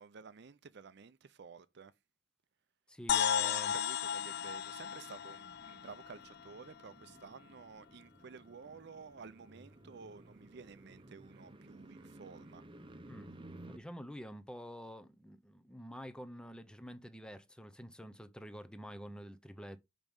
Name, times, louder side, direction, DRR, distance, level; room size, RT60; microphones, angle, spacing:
voice 1, 0.0-1.9 3.1-12.6, right 5 dB, 60° right, 0.5 m, -52 dB
voice 2, 2.9-3.7 13.0-13.3 13.7-19.8, equal, 5° left, 0.7 m, -48 dB
sound 1, 3.1-6.8, left 9 dB, 55° left, 0.3 m, -35 dB
sound 2, 4.0-13.8, right 1 dB, 25° right, 0.8 m, -56 dB
6.0 x 5.3 x 5.4 m
head